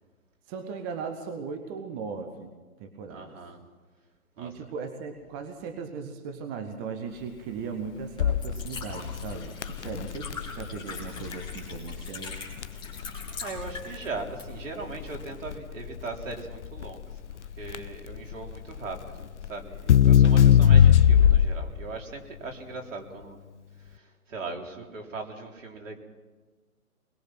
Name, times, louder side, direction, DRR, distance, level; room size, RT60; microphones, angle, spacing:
voice 1, 0.5-2.5 2.8-3.4 4.4-12.4, right 5 dB, 15° right, 6 dB, 0.8 m, -37 dB
voice 2, 3.1-3.6 4.4-4.5 13.4-23.4 23.9-24.0 24.3-26.0, right 3 dB, 60° right, 1 dB, 3.9 m, -39 dB
Liquid, 6.9-15.5, left 4 dB, 10° left, 3.9 m, -43 dB
Crackle, 8.2-21.8, left 9 dB, 50° left, 0.7 m, -22 dB
23.0 x 21.5 x 6.0 m, 1.3 s
hypercardioid pair, 140°, 44 cm